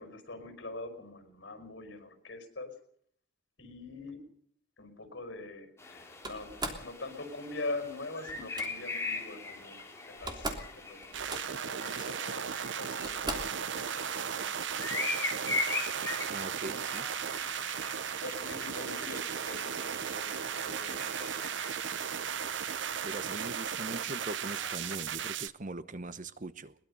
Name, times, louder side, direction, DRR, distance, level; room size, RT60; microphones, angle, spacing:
voice 1, 0.0-2.7 3.6-4.3 4.8-15.2 18.2-21.5, left 2 dB, 75° left, 5.4 m, -44 dB
sound 1, 5.8-25.0, left 3 dB, 15° left, 4.1 m, -41 dB
Slam, 6.2-6.9 8.3-8.7 9.8-9.9 10.1-10.7 11.0-11.7 12.5-12.6 13.0-13.6, right 2 dB, 25° right, 3.2 m, -38 dB
sound 2, 11.1-25.5, right 8 dB, 80° right, 0.7 m, -36 dB
voice 2, 16.3-17.1 23.0-26.7, right 2 dB, 45° right, 1.0 m, -41 dB
22.0 x 21.0 x 5.6 m
head